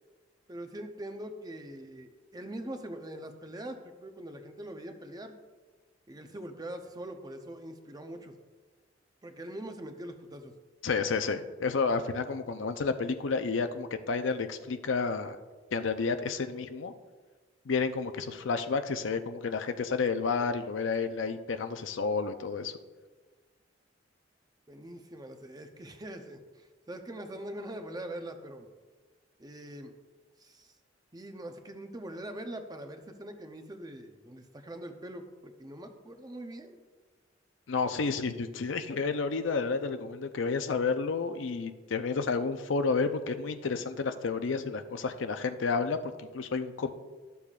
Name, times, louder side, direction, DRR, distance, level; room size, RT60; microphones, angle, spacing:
voice 1, 0.5-5.3 6.1-8.3 9.2-10.5 24.7-28.7 29.4-29.9 30.4-30.7 31.1-36.8, right 1 dB, 20° right, 6 dB, 0.7 m, -43 dB
voice 2, 10.8-15.4 15.7-16.9 17.7-22.7 37.7-46.9, left 4 dB, 85° left, 8 dB, 0.6 m, -31 dB
13.0 x 6.9 x 2.4 m, 1.3 s
head